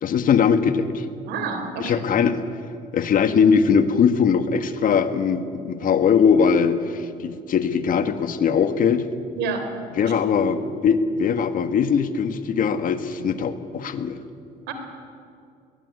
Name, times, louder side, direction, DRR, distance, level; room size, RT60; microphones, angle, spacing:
voice 1, 0.0-1.0 1.8-2.4 2.9-9.1 10.0-14.2, left 6 dB, 55° left, 10 dB, 1.7 m, -20 dB
voice 2, 1.3-2.0 9.4-9.7 10.0-10.1 14.7-14.8, right 5 dB, 85° right, 7 dB, 3.8 m, -29 dB
21.5 x 20.0 x 9.6 m, 2.4 s
cardioid pair, 110°, 17 cm